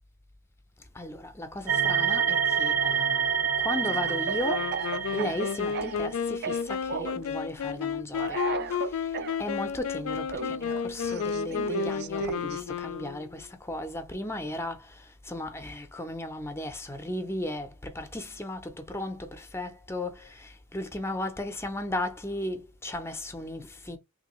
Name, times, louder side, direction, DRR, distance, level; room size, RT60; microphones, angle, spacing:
voice 1, 0.9-4.7 5.1-8.4 8.7-9.1 9.4-24.0, left 1 dB, 10° left, 0.5 m, -35 dB
sound 1, 1.7-5.9, right 8 dB, 65° right, 0.8 m, -27 dB
Speech / Cough, 3.9-6.1 6.4-7.2 8.1-9.4 10.3-12.6, right 5 dB, 50° right, 0.4 m, -35 dB
Wind instrument woodwind instrument, 4.4-13.4, left 6 dB, 70° left, 0.4 m, -32 dB
3.3 x 2.7 x 3.0 m
head